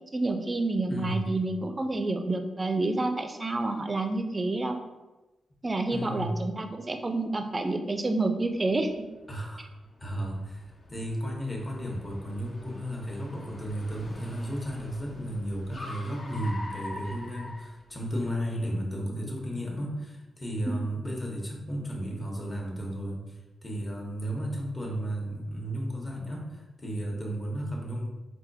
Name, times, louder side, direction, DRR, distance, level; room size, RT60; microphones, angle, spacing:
voice 1, 0.1-4.8 5.6-8.9 9.6-9.7 20.7-20.8, right 2 dB, 30° right, 6 dB, 0.4 m, -29 dB
voice 2, 0.9-1.3 5.9-6.3 9.3-9.7 10.0-23.2 23.6-28.1, equal, 25° left, -1 dB, 0.9 m, -33 dB
Car, 8.5-18.3, left 1 dB, 45° left, 0.6 m, -45 dB
4.1 x 2.3 x 2.6 m, 1.1 s
cardioid pair, 65°, 0 cm